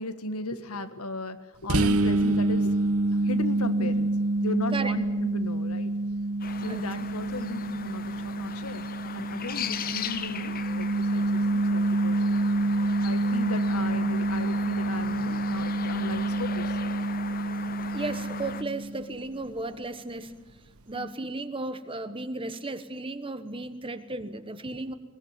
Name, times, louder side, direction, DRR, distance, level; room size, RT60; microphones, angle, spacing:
voice 1, 0.0-2.8 3.2-4.1 4.4-5.9 6.6-8.8 9.1-12.2 13.0-16.8 20.9-21.2, left 2 dB, 90° left, 10 dB, 1.6 m, -36 dB
sound 1, 1.7-19.2, right 2 dB, 85° right, 1.2 m, -27 dB
sound 2, 6.4-18.6, left 7 dB, 40° left, 1.0 m, -38 dB
voice 2, 17.9-20.3 20.9-24.9, right 2 dB, 25° right, 11 dB, 1.2 m, -34 dB
22.0 x 19.0 x 9.0 m, 1.2 s
head